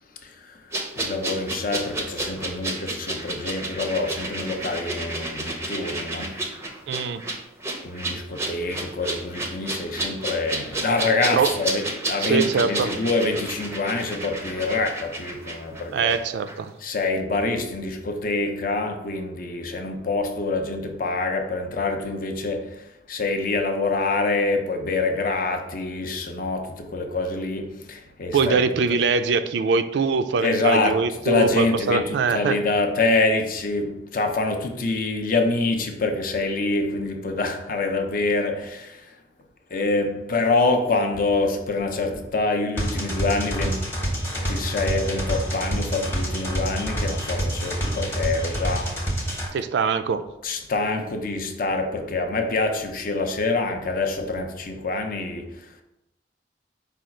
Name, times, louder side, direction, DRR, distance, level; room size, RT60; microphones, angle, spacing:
voice 1, 0.2-6.4 7.8-16.2 16.8-28.6 30.4-39.2 39.7-43.9 44.3-49.0 50.4-55.8, left 3 dB, 50° left, 0.5 m, -26 dB
sound 1, 0.7-16.2 16.5-16.6, right 2 dB, 15° right, 0.5 m, -31 dB
voice 2, 6.9-7.4 11.4-11.5 12.2-12.9 15.9-16.7 28.3-32.5 49.5-50.2, right 5 dB, 70° right, 0.3 m, -23 dB
sound 2, 42.8-49.5, right 1 dB, 15° left, 0.8 m, -27 dB
4.9 x 2.3 x 4.3 m
head